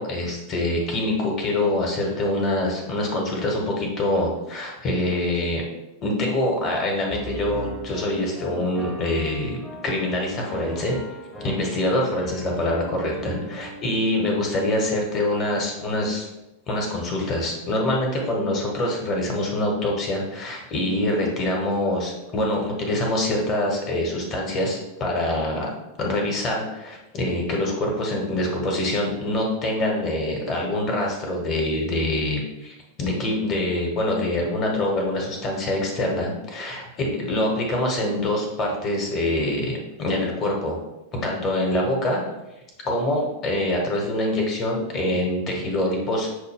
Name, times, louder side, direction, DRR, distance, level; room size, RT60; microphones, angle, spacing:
voice 1, 0.0-5.6 6.0-10.9 11.4-16.3 16.7-25.7 26.0-40.8 41.1-42.2 42.8-46.3, left 1 dB, 30° left, 0 dB, 1.1 m, -25 dB
Piano, 7.1-13.9, right 1 dB, 10° left, 0.8 m, -38 dB
6.3 x 2.2 x 3.4 m, 0.95 s
figure-of-eight pair, 90°, 0 cm